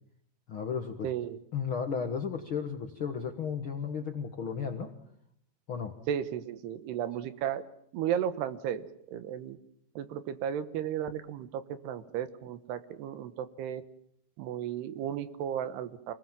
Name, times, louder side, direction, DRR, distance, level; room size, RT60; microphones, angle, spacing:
voice 1, 0.5-1.1 1.5-4.9 5.7-5.9, left 6 dB, 65° left, 5 dB, 1.3 m, -34 dB
voice 2, 1.0-1.4 6.1-7.6 7.9-8.9 9.1-9.6 10.0-13.8 14.4-16.1, right 9 dB, 85° right, 12 dB, 3.3 m, -34 dB
27.5 x 19.5 x 7.5 m, 0.73 s
omnidirectional pair, 4.6 m